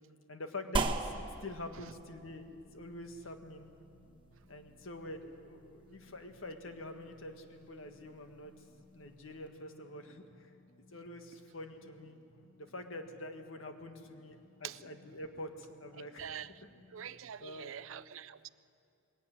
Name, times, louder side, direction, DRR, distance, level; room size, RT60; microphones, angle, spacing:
voice 1, 0.3-3.7 4.5-8.5 8.9-10.5 10.9-12.2 12.6-16.3 17.4-17.7, left 1 dB, 90° left, 6 dB, 1.7 m, -46 dB
sound 1, 0.8-9.5, right 3 dB, 25° right, 1.1 m, -42 dB
sound 2, 1.8-17.8, left 2 dB, 65° left, 1.6 m, -64 dB
voice 2, 16.2-16.5 16.9-18.5, right 9 dB, 85° right, 16 dB, 0.5 m, -44 dB
20.5 x 17.5 x 9.4 m, 2.5 s
head